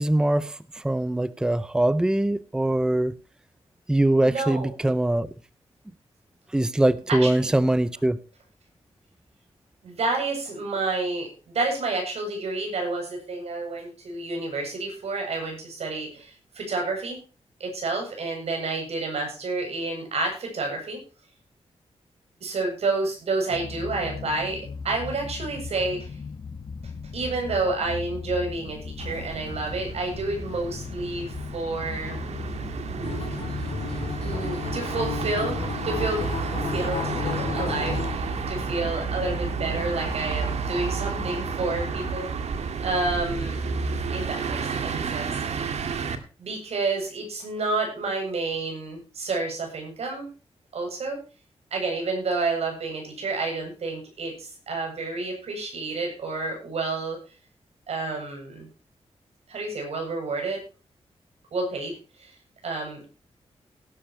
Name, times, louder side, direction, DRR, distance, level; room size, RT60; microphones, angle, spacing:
voice 1, 0.0-3.1 3.9-5.3 6.5-8.2, right 1 dB, 5° right, 0.6 m, -22 dB
voice 2, 4.1-4.9 7.1-7.3 9.8-17.2 17.6-21.0 22.4-26.2 27.1-32.2 34.2-36.3 36.6-42.3 42.8-43.6 44.1-45.4 46.4-50.3 50.7-51.2 51.7-57.2 57.9-58.7 59.5-60.6 61.5-62.3 62.6-63.1, right 3 dB, 70° right, 7.8 m, -29 dB
sound 1, 23.5-42.2, left 5 dB, 40° left, 1.4 m, -38 dB
sound 2, 29.0-46.2, right 5 dB, 90° right, 1.9 m, -31 dB
Acoustic guitar, 33.0-38.2, left 7 dB, 70° left, 2.9 m, -32 dB
18.0 x 11.5 x 3.1 m
wide cardioid pair, 170°, 11 cm